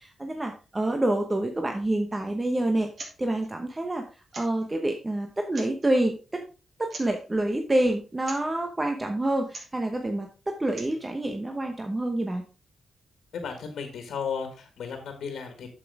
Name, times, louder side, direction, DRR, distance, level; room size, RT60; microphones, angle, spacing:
voice 1, 0.0-2.9 3.2-4.0 4.3-6.4 6.8-12.4, right 1 dB, 20° right, 4 dB, 0.9 m, -27 dB
sound 1, 2.9-3.2 3.4-3.5 4.3-4.7 5.4-5.9 6.9-7.2 8.2-8.5 9.4-9.8 10.6-11.0, right 3 dB, 50° right, 2.4 m, -42 dB
voice 2, 13.3-15.7, left 6 dB, 85° left, 5 dB, 1.7 m, -34 dB
8.2 x 7.3 x 3.5 m, 0.34 s
cardioid pair, 100°, 0 cm